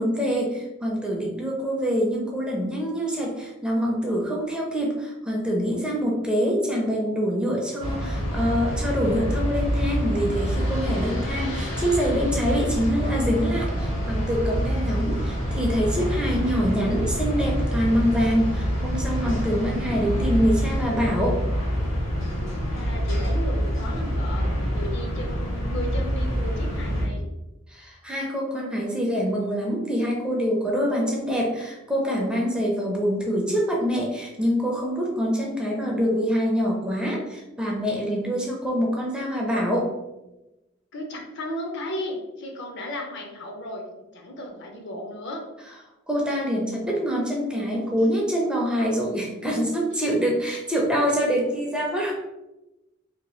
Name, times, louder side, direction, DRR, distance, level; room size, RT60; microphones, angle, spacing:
voice 1, 0.0-21.4 27.7-39.9 46.1-52.1, equal, 5° right, -2 dB, 0.4 m, -25 dB
sound 1, 7.8-27.1, equal, 80° left, 1.2 m, -26 dB
voice 2, 22.7-27.3 40.9-45.4 50.5-50.6, left 1 dB, 60° left, 1 dB, 0.6 m, -35 dB
2.8 x 2.2 x 3.0 m, 0.98 s
head